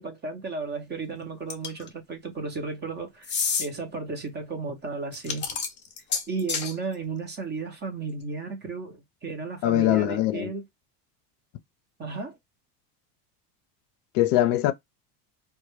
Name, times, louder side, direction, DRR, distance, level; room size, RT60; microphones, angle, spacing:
voice 1, 0.0-5.5 6.3-10.6 12.0-12.4, right 4 dB, 25° right, 0.5 m, -34 dB
sound 1, 1.5-1.9 3.2-3.7 5.1-6.7, left 6 dB, 25° left, 0.6 m, -28 dB
voice 2, 9.6-10.5 14.1-14.7, left 14 dB, 65° left, 0.5 m, -22 dB
2.2 x 2.1 x 3.0 m
supercardioid pair, 120°, 48 cm